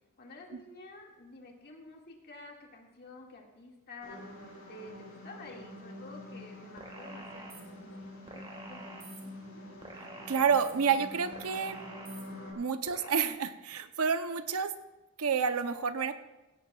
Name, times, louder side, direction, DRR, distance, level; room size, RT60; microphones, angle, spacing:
voice 1, 0.2-4.2 4.7-9.0 9.6-9.7, left 2 dB, 45° left, 0 dB, 2.1 m, -50 dB
sound 1, 4.0-12.5, left 1 dB, 70° left, 3.8 m, -47 dB
sound 2, 6.8-7.6 8.3-9.2 9.8-10.7 11.3-12.2 12.9-13.3, right 2 dB, 25° right, 1.7 m, -47 dB
voice 2, 9.9-11.8 12.5-14.7 15.2-16.1, right 6 dB, 90° right, 10 dB, 0.7 m, -29 dB
16.5 x 16.5 x 2.4 m, 1.1 s
head